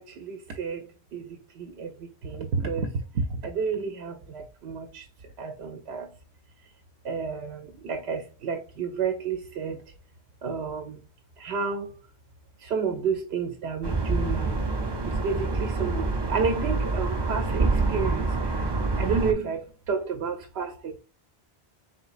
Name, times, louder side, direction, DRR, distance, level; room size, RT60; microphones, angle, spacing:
voice 1, 0.0-5.0 5.4-6.1 7.0-9.8 10.4-11.0 11.4-12.0 12.6-14.6 15.1-18.7 19.0-21.0, right 5 dB, 75° right, 0.8 m, -31 dB
sound 1, 13.8-19.3, right 3 dB, 35° right, 0.5 m, -26 dB
3.9 x 3.8 x 2.4 m
omnidirectional pair, 1.1 m